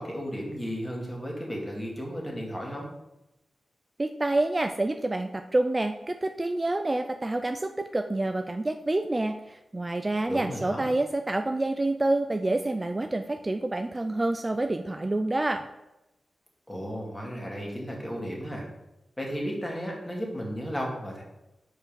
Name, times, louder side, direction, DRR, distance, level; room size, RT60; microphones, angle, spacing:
voice 1, 0.0-2.9 10.3-10.9 16.7-18.7 19.2-21.2, equal, 15° left, -2 dB, 2.0 m, -34 dB
voice 2, 4.0-15.6, right 2 dB, 30° right, 7 dB, 0.4 m, -28 dB
4.9 x 4.5 x 5.1 m, 0.94 s
cardioid pair, 55°, 0 cm